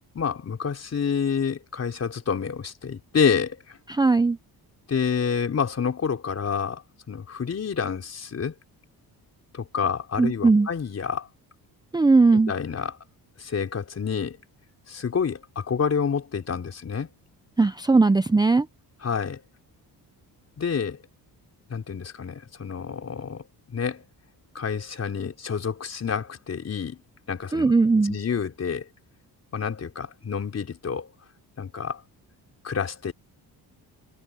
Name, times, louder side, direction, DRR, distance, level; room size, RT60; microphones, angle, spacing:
voice 1, 0.0-3.8 4.9-8.5 9.5-11.3 12.5-13.0 13.4-14.4 14.9-17.1 19.0-19.4 20.6-21.0 21.7-24.0 24.5-27.0 27.3-27.7 28.0-28.9 29.5-31.1 31.6-32.0 32.6-33.1, left 6 dB, 40° left, 4.7 m, -28 dB
voice 2, 3.9-4.4 10.2-10.7 11.9-12.5 17.6-18.7 27.5-28.2, right 3 dB, 10° right, 0.6 m, -19 dB
cardioid pair, 125°, 39 cm